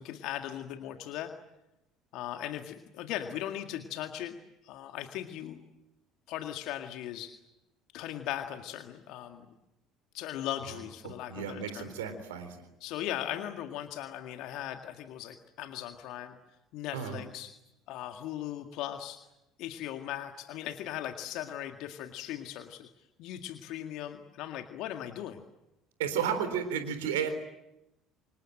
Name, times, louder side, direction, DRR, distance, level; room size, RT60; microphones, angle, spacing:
voice 1, 0.0-1.3 2.1-4.4 4.6-5.6 6.3-7.3 7.9-9.5 10.1-11.9 12.8-16.4 16.7-17.5 17.9-19.2 19.6-22.9 23.2-25.4, left 12 dB, 65° left, 6 dB, 1.9 m, -38 dB
voice 2, 11.3-12.6 16.9-17.2 26.0-27.3, right 8 dB, 80° right, 10 dB, 3.9 m, -32 dB
29.0 x 26.5 x 7.8 m, 0.91 s
hypercardioid pair, 60°, 0 cm